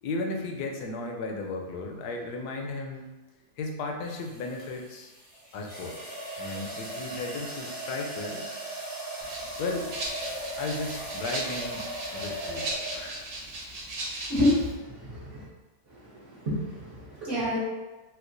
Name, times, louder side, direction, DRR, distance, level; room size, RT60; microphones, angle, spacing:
voice 1, 0.0-3.1 3.6-5.1 5.5-8.5 9.6-9.9 10.6-13.4, left 3 dB, 85° left, 2 dB, 1.1 m, -35 dB
sound 1, 2.1-2.4 4.0-13.3, right 1 dB, 20° right, 0.6 m, -38 dB
Rattle (instrument), 9.2-14.7, right 2 dB, 75° right, 1.3 m, -37 dB
voice 2, 14.3-15.4 15.9-17.6, left 1 dB, 55° right, -9 dB, 1.2 m, -28 dB
4.4 x 2.1 x 2.6 m, 1.2 s
omnidirectional pair, 1.7 m